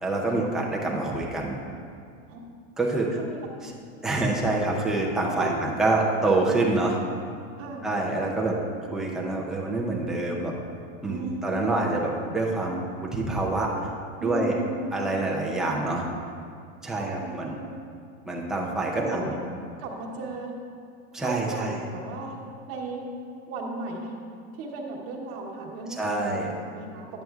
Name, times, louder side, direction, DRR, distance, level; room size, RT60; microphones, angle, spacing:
voice 1, 0.0-1.6 2.8-3.2 3.6-3.7 4.0-7.0 7.8-8.6 8.9-10.5 11.0-13.7 14.2-14.6 14.9-16.0 16.8-17.5 18.3-19.3 21.1-21.8 26.0-26.5, right 2 dB, ahead, -3 dB, 0.4 m, -26 dB
voice 2, 2.9-3.7 5.4-5.6 7.6-7.8 8.9-9.1 11.1-11.7 14.2-15.1 15.5-15.7 16.9-17.8 18.9-19.4 19.8-20.5 21.1-22.4 22.7-23.0 23.5-24.2 24.5-27.1, right 3 dB, 40° right, -1 dB, 1.1 m, -36 dB
10.5 x 7.5 x 2.4 m, 2.3 s
supercardioid pair, 160°, 37 cm